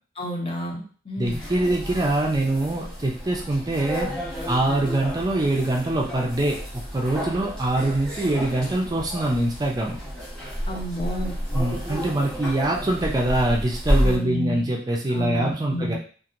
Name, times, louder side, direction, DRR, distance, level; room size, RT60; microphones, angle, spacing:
voice 1, 0.2-1.4 10.7-11.4 14.0-14.7 15.1-16.0, equal, 30° left, 0 dB, 0.5 m, -30 dB
sound 1, 1.2-14.2, equal, 5° left, 1.0 m, -30 dB
voice 2, 1.2-4.1 4.5-10.0 11.5-16.0, right 1 dB, 20° right, -1 dB, 0.4 m, -24 dB
2.9 x 2.5 x 2.5 m, 0.41 s
head